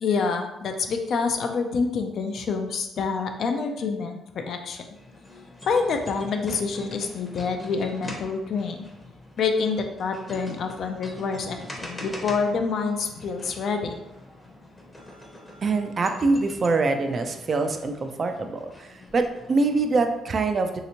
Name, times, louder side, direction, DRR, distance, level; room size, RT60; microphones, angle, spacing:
voice 1, 0.0-4.9 5.7-8.8 9.4-13.9, left 5 dB, 65° left, 5 dB, 0.4 m, -27 dB
sound 1, 4.9-20.2, left 1 dB, 20° left, 0.7 m, -43 dB
voice 2, 15.6-20.8, right 3 dB, 45° right, 6 dB, 0.4 m, -24 dB
3.2 x 2.8 x 2.8 m, 0.96 s
cardioid pair, 90°, 0 cm